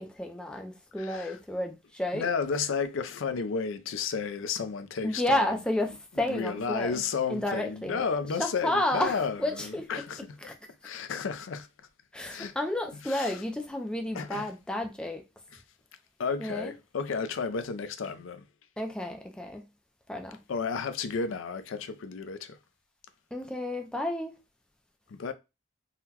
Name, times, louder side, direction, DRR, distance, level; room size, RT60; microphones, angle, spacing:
voice 1, 0.0-2.3 5.0-7.0 7.3-8.0 8.4-9.9 10.4-10.5 12.1-15.2 16.4-16.7 18.8-19.6 20.1-20.4 23.3-24.3, left 1 dB, 5° left, 0.3 m, -31 dB
voice 2, 1.0-1.4 2.1-5.6 6.2-10.4 10.8-11.7 12.3-12.5 13.0-13.4 14.1-14.5 15.5-15.6 16.2-18.5 20.5-22.6 25.1-25.3, left 5 dB, 80° left, 0.4 m, -32 dB
3.8 x 2.1 x 2.8 m
head